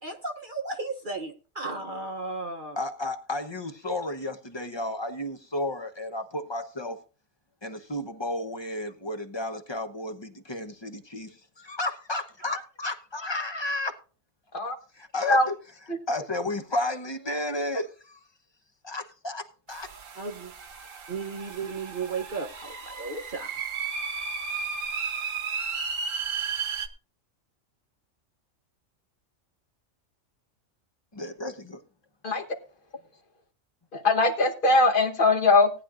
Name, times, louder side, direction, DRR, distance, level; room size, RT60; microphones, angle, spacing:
voice 1, 0.0-2.8 12.4-12.6 20.2-20.5 21.1-23.5, right 3 dB, 45° right, 0.9 m, -35 dB
voice 2, 2.8-7.0 7.6-14.0 14.9-15.5 16.1-18.2 18.8-19.9 31.1-31.8, left 1 dB, 20° left, 0.9 m, -32 dB
sound 1, 19.7-26.9, right 5 dB, 70° right, 1.4 m, -34 dB
voice 3, 33.9-35.7, left 2 dB, 40° left, 1.4 m, -21 dB
18.0 x 10.0 x 2.5 m
omnidirectional pair, 1.4 m